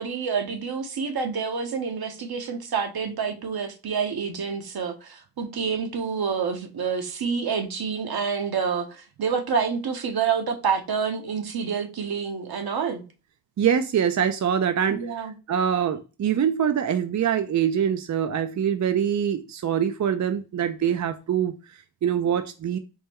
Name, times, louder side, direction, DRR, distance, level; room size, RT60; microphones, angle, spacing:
voice 1, 0.0-13.0 14.9-15.3, right 6 dB, 65° right, 0.9 m, -28 dB
voice 2, 13.6-22.8, right 8 dB, 45° right, 0.4 m, -24 dB
4.5 x 2.1 x 3.5 m
cardioid pair, 55°, 41 cm